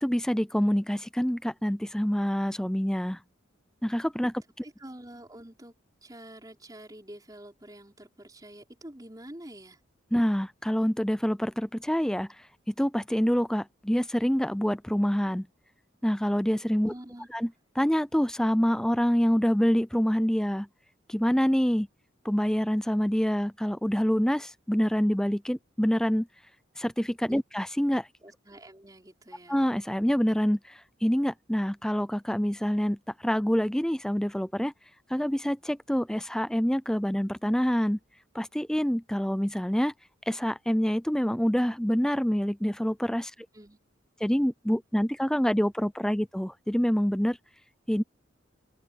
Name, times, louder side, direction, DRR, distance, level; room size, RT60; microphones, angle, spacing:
voice 1, 0.0-3.2 3.8-4.6 10.1-15.5 16.0-16.9 17.3-17.5 17.8-20.7 21.1-21.9 22.2-26.3 26.8-28.1 29.5-34.7 35.1-38.0 38.3-39.9 40.3-43.3 44.2-47.4 47.9-48.0, equal, 5° left, 0.5 m, -26 dB
voice 2, 4.6-5.7 6.0-9.8 16.8-17.3 27.3-27.4 28.2-29.6 43.5-43.8, right 1 dB, 20° right, 4.6 m, -47 dB
open air
head